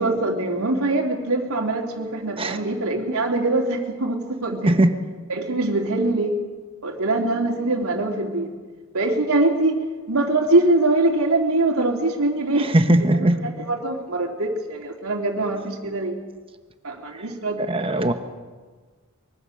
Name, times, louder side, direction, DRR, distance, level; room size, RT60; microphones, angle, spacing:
voice 1, 0.0-4.8 5.3-6.4 6.8-8.5 8.9-9.8 10.1-16.2 16.8-17.6, right 2 dB, 80° right, -1 dB, 3.3 m, -23 dB
voice 2, 12.6-13.4 17.7-18.1, right 1 dB, 25° right, 7 dB, 1.3 m, -19 dB
24.0 x 23.0 x 6.6 m, 1.4 s
head